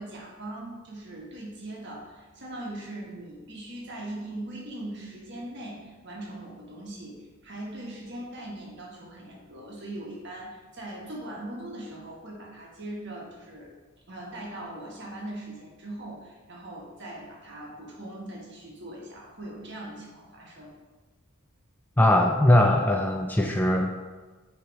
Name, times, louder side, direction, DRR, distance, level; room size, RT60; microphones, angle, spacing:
voice 1, 0.0-13.7 14.1-20.7, right 1 dB, 55° right, -3 dB, 1.4 m, -40 dB
voice 2, 22.0-24.0, left 1 dB, 10° left, 2 dB, 0.3 m, -21 dB
6.6 x 3.3 x 4.6 m, 1.3 s
head